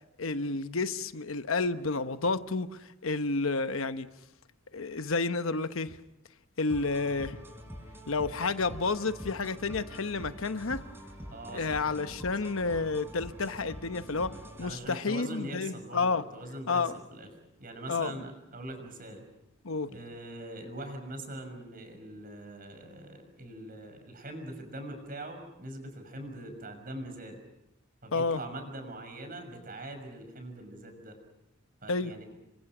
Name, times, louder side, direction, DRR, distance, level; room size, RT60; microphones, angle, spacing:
voice 1, 0.2-4.1 4.7-6.0 6.6-7.4 8.1-10.8 11.5-14.3 14.6-16.2 16.7-17.0 17.9-18.1 19.6-19.9 28.1-28.4 31.9-32.1, left 3 dB, 85° left, 1.1 m, -30 dB
sound 1, 6.7-14.7, equal, 10° right, 4.6 m, -45 dB
voice 2, 11.3-11.8 12.4-12.5 14.6-16.8 17.1-17.3 17.6-19.2 19.9-27.4 28.0-31.2 31.8-32.2, right 1 dB, 45° right, 6.1 m, -42 dB
29.5 x 24.0 x 6.1 m
head